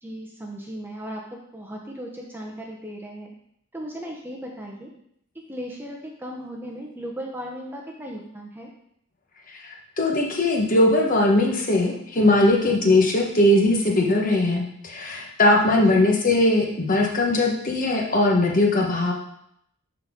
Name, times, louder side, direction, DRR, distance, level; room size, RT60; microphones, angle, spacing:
voice 1, 0.0-3.3 3.7-4.9 5.5-8.7 15.7-16.1, equal, 10° right, -1 dB, 0.8 m, -36 dB
voice 2, 9.6-19.1, left 1 dB, 35° left, 0 dB, 1.1 m, -20 dB
11.0 x 4.0 x 3.6 m, 0.73 s
head